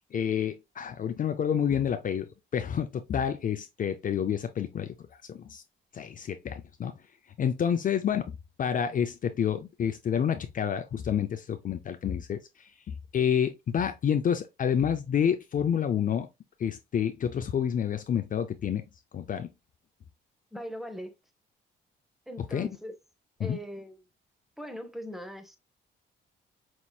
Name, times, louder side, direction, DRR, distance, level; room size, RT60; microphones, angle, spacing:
voice 1, 0.1-2.3 2.5-4.9 5.3-5.6 5.9-6.9 7.4-8.3 8.6-16.3 16.6-18.8 19.1-19.5 22.5-22.7 23.4-23.6, left 8 dB, 45° left, 0.5 m, -29 dB
voice 2, 20.5-21.1 22.3-22.9 23.4-24.0 24.6-25.6, equal, ahead, 0.9 m, -40 dB
5.3 x 3.0 x 2.3 m
cardioid pair, 90°, 20 cm